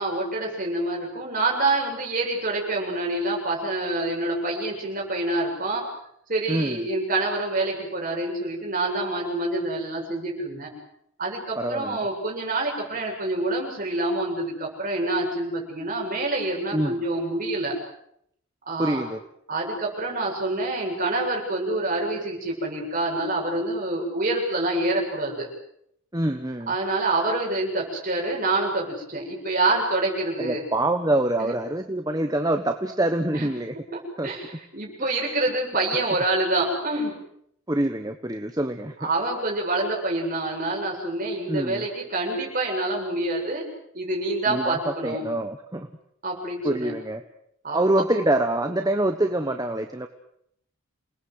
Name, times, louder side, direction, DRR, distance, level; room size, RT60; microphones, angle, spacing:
voice 1, 0.0-5.8 6.3-10.7 11.2-17.7 18.7-19.0 19.5-25.5 26.7-30.6 31.4-31.5 33.3-33.5 33.9-37.1 39.0-43.6 43.9-45.3 46.2-46.9 47.6-47.8, right 2 dB, 40° right, -1 dB, 7.7 m, -27 dB
voice 2, 6.5-6.9 11.6-12.0 16.7-17.0 18.8-19.2 26.1-26.7 30.4-33.7 34.2-34.3 35.0-35.1 37.7-38.9 41.5-41.8 44.5-45.9 46.6-47.2 47.7-50.1, right 1 dB, 15° right, 6 dB, 1.2 m, -25 dB
28.5 x 20.0 x 8.0 m, 0.73 s
head